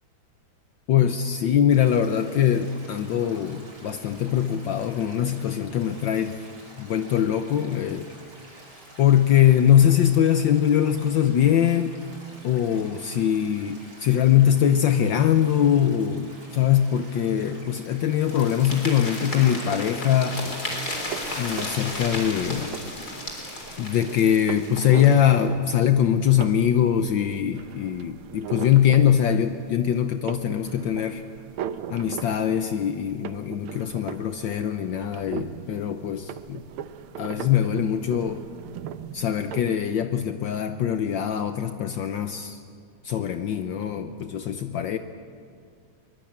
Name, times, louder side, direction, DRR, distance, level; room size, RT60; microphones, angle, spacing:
voice 1, 0.9-6.4 6.8-8.1 9.0-12.0 12.4-20.4 21.4-22.7 23.8-31.2 31.9-36.6 37.2-38.4 39.1-42.6 43.0-45.0, left 9 dB, 70° left, 8 dB, 1.4 m, -22 dB
Stream, 1.7-19.1, right 1 dB, 70° right, 7.9 m, -49 dB
sound 1, 18.2-25.4, left 1 dB, 45° left, 4.4 m, -34 dB
sound 2, 20.3-39.8, right 9 dB, 90° right, 1.8 m, -39 dB
23.0 x 21.0 x 8.6 m, 2.1 s
omnidirectional pair, 2.3 m